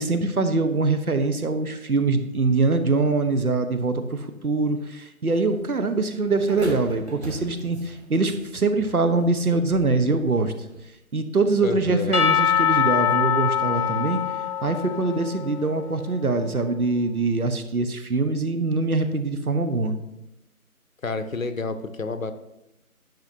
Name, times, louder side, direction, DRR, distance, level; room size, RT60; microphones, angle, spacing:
voice 1, 0.0-10.5 11.1-14.2 14.6-20.0, right 3 dB, 75° right, 9 dB, 1.0 m, -23 dB
sound 1, 5.5-10.8, right 2 dB, 50° right, 1.4 m, -38 dB
voice 2, 11.6-12.2 21.0-22.3, left 3 dB, 65° left, 10 dB, 0.8 m, -29 dB
Percussion / Church bell, 12.1-16.0, left 9 dB, 90° left, 1.0 m, -23 dB
10.5 x 5.9 x 2.7 m, 0.89 s
figure-of-eight pair, 170°, 44 cm